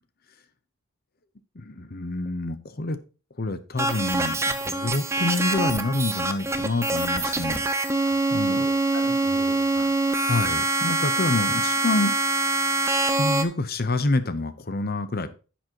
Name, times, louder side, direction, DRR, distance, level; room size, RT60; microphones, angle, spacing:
voice 1, 1.5-3.0 3.4-7.6 8.3-8.7 10.2-12.1 13.2-15.3, left 2 dB, 45° left, 12 dB, 0.9 m, -27 dB
sound 1, 3.8-13.4, right 2 dB, 10° right, 0.7 m, -24 dB
voice 2, 8.0-9.9 11.5-11.6, left 2 dB, 80° left, 1 dB, 3.3 m, -42 dB
10.5 x 7.4 x 2.9 m, 0.34 s
head